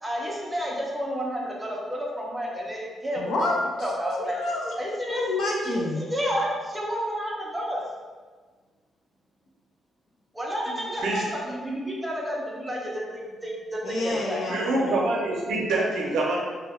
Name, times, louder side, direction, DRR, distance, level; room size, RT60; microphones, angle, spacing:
voice 1, 0.0-3.5 3.8-4.4 4.8-5.3 6.0-7.8 10.3-14.4, equal, 10° right, -3 dB, 0.5 m, -30 dB
voice 2, 3.2-3.6 4.2-4.7 5.1-6.0 13.8-14.7, left 2 dB, 60° left, -1 dB, 0.5 m, -28 dB
voice 3, 14.5-16.4, right 2 dB, 85° right, -2 dB, 0.5 m, -25 dB
2.2 x 2.1 x 3.4 m, 1.4 s
cardioid pair, 155°, 0 cm